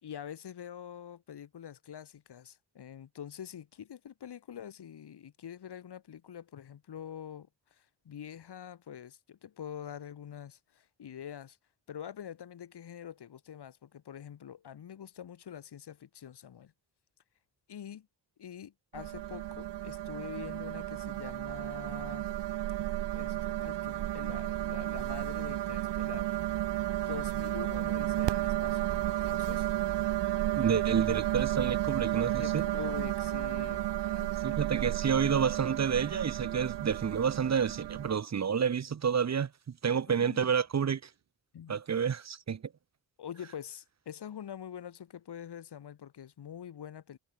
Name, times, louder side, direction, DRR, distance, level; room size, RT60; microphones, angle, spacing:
voice 1, 0.0-11.6 11.9-16.7 17.7-18.1 18.4-22.3 23.1-26.4 27.0-29.7 32.4-34.3 40.1-40.5 41.5-41.8 43.2-47.2, left 9 dB, 70° left, 1.8 m, -45 dB
sound 1, 18.9-38.1, right 14 dB, 85° right, 0.6 m, -33 dB
sound 2, 23.4-35.5, right 7 dB, 70° right, 6.9 m, -62 dB
voice 2, 30.6-32.6 34.4-39.5 39.8-41.0 41.7-42.6, right 7 dB, 40° right, 0.8 m, -29 dB
wide cardioid pair, 155°, 41 cm